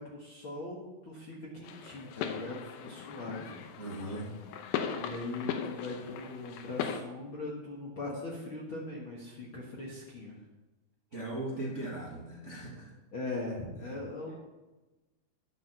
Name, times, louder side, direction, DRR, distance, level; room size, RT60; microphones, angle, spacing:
voice 1, 0.0-3.6 4.9-10.3 13.1-14.3, left 2 dB, 55° left, -3 dB, 1.5 m, -40 dB
sound 1, 1.6-7.0, left 8 dB, 80° left, 2.6 m, -38 dB
voice 2, 3.8-4.4 11.1-12.9 13.7-14.0, right 1 dB, 45° right, -4 dB, 0.9 m, -39 dB
10.5 x 6.8 x 6.7 m, 1.1 s
omnidirectional pair, 4.5 m